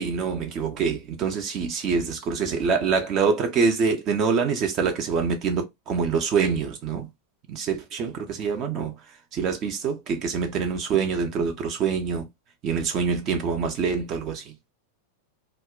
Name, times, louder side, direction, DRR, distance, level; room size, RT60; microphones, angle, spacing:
voice 1, 0.0-7.1 7.5-8.9 9.3-12.3 12.6-14.5, right 5 dB, 35° right, 0.5 m, -25 dB
2.0 x 2.0 x 3.7 m
figure-of-eight pair, 90°, 0 cm